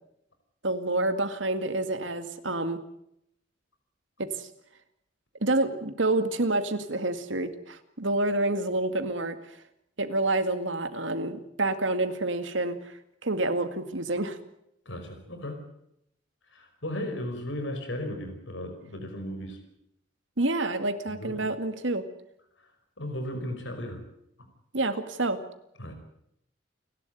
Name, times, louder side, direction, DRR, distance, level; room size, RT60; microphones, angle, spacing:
voice 1, 0.6-2.8 4.2-4.5 5.4-9.4 10.0-12.9 13.2-14.4 20.4-22.0 24.7-25.4, right 2 dB, 85° right, 9 dB, 2.1 m, -28 dB
voice 2, 14.8-15.6 16.5-19.6 21.1-21.4 22.6-22.7 23.0-24.0 25.8-26.0, left 1 dB, 85° left, 6 dB, 5.0 m, -35 dB
29.5 x 12.0 x 9.3 m, 0.78 s
head